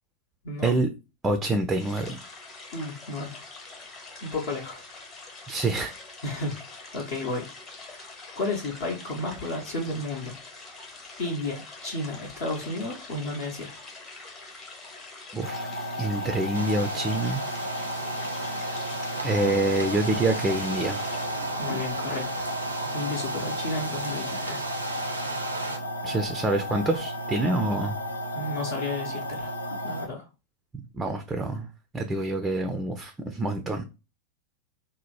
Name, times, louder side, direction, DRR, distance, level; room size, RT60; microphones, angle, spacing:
voice 1, 1.2-2.2 5.5-5.9 15.3-15.7 16.0-17.4 19.2-21.0 26.0-28.0 30.9-31.7 31.9-33.8, right 2 dB, 15° right, 0.4 m, -26 dB
sound 1, 1.8-21.3, left 3 dB, 30° left, 1.0 m, -45 dB
voice 2, 2.7-3.4 4.2-4.8 6.2-7.9 8.3-10.4 11.2-13.8 21.6-22.5 22.9-24.6 28.3-29.5 29.8-30.2, left 2 dB, 55° left, 0.8 m, -33 dB
sound 2, 15.4-30.1, left 1 dB, 85° left, 0.4 m, -33 dB
sound 3, 16.5-25.8, right 3 dB, 80° right, 0.5 m, -35 dB
2.8 x 2.0 x 2.9 m
figure-of-eight pair, 90°, 0 cm